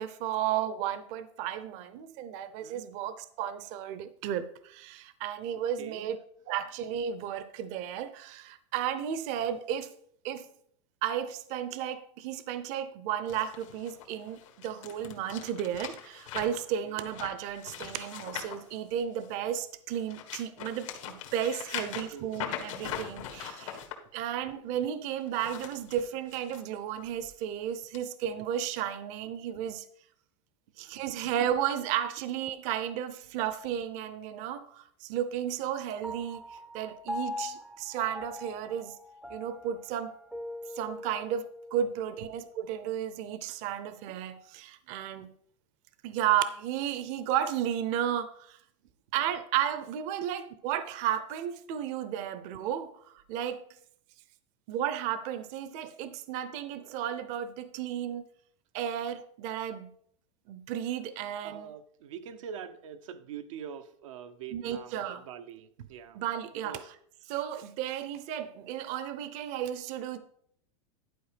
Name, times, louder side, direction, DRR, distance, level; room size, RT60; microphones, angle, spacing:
voice 1, 0.0-6.2 6.5-9.9 10.2-10.5 11.0-23.8 24.1-29.8 30.8-36.4 36.7-39.0 39.3-40.1 40.8-45.3 46.0-48.6 49.1-53.6 54.7-58.3 58.7-59.9 60.5-61.7 64.5-65.2 66.2-66.8 67.3-70.2, right 10 dB, 45° right, 0.7 m, -33 dB
voice 2, 5.8-6.1 16.8-17.0 21.7-21.9 22.1-22.4 61.4-66.2 66.5-66.9, right 7 dB, 80° right, 0.7 m, -44 dB
sound 1, 13.3-19.4 19.9-23.9 25.2-26.6 27.0-27.3 27.9-28.0, left 10 dB, 80° left, 1.6 m, -41 dB
Piano, 36.0-42.7, left 2 dB, 5° right, 0.5 m, -42 dB
11.0 x 4.5 x 5.0 m
supercardioid pair, 145°, 16 cm